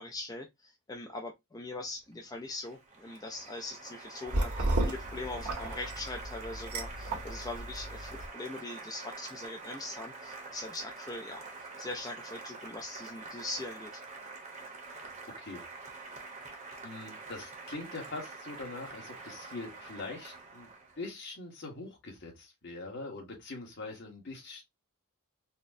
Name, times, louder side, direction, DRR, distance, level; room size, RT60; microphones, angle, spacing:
voice 1, 0.0-11.5 11.8-14.0, left 2 dB, 15° left, 0.4 m, -41 dB
Applause, 2.1-21.0, right 3 dB, 30° right, 0.8 m, -46 dB
sound 1, 4.3-8.3, right 1 dB, 80° right, 1.3 m, -34 dB
voice 2, 16.8-20.7 21.0-24.6, left 3 dB, 50° left, 1.3 m, -43 dB
4.2 x 2.1 x 2.6 m
head